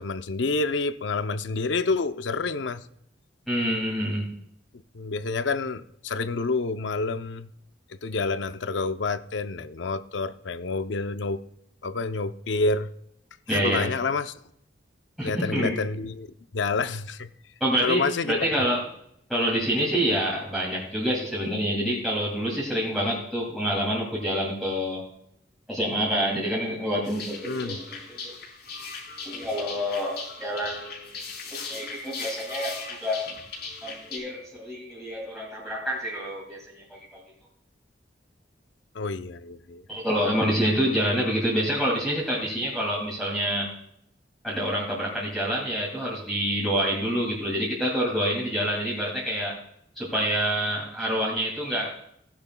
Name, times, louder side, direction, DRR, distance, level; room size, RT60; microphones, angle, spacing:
voice 1, 0.0-2.8 4.9-7.5 7.9-11.4 11.8-12.9 13.5-14.3 15.2-16.3 16.5-17.3 17.8-18.6 27.4-27.8 38.9-39.8, left 3 dB, 85° left, 0.6 m, -28 dB
voice 2, 3.5-4.3 13.5-13.9 15.2-15.7 17.6-18.8 19.3-25.0 25.7-28.3 29.2-31.2 31.5-33.3 33.8-37.0 39.9-43.7 44.4-49.6 50.0-51.9, equal, ahead, 2.6 m, -27 dB
sound 1, 27.0-34.2, left 4 dB, 65° left, 4.2 m, -38 dB
16.0 x 10.5 x 2.2 m
head